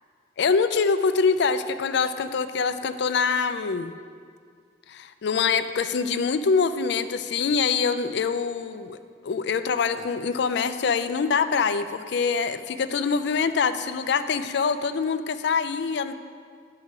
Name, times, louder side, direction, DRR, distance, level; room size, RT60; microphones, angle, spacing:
voice 1, 0.4-3.9 4.9-9.0 9.2-16.1, left 5 dB, 65° left, 11 dB, 0.4 m, -24 dB
9.4 x 4.9 x 6.5 m, 2.1 s
head